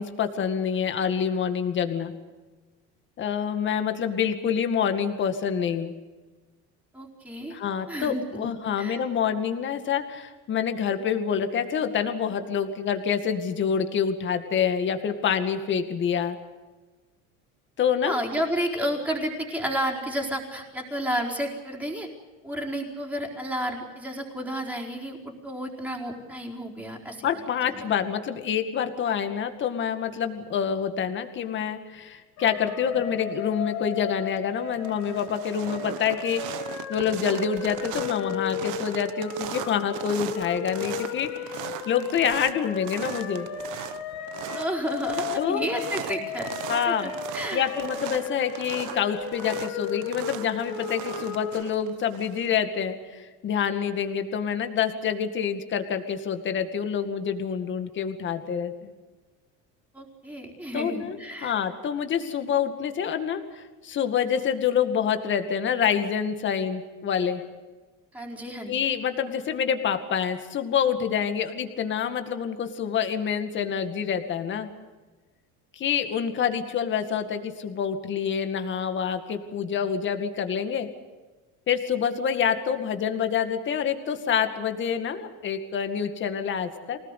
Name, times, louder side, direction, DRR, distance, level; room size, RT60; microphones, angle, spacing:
voice 1, 0.0-2.1 3.2-5.9 7.5-16.4 17.8-18.2 27.2-43.5 45.4-45.7 46.7-47.1 47.5-58.9 60.7-61.2 61.4-67.4 68.7-74.7 75.7-80.9 81.7-87.0, left 7 dB, 35° left, 7 dB, 2.2 m, -27 dB
voice 2, 6.9-7.6 7.9-8.5 8.8-9.0 18.0-22.1 22.4-27.3 27.7-27.8 44.5-46.5 46.9-47.7 59.9-61.5 68.1-68.8, equal, 5° right, 0 dB, 4.5 m, -31 dB
sound 1, 32.4-51.6, left 7 dB, 60° left, 3.5 m, -35 dB
sound 2, 34.0-34.4 34.7-52.6, right 14 dB, 65° right, 1.2 m, -39 dB
24.5 x 19.0 x 8.3 m, 1.2 s
cardioid pair, 145°, 32 cm